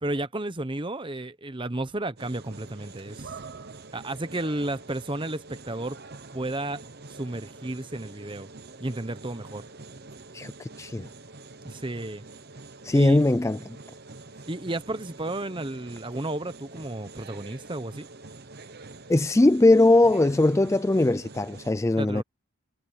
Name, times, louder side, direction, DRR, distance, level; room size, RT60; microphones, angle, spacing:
voice 1, 0.0-3.3 3.9-6.0 6.3-6.8 7.1-8.5 8.8-9.6 11.6-12.2 12.9-13.2 14.5-18.1 22.0-22.2, right 1 dB, 20° right, 0.9 m, -32 dB
sound 1, 2.2-21.7, right 3 dB, 45° right, 1.0 m, -45 dB
voice 2, 10.3-11.1 12.8-13.6 19.1-22.2, left 2 dB, 15° left, 0.3 m, -20 dB
head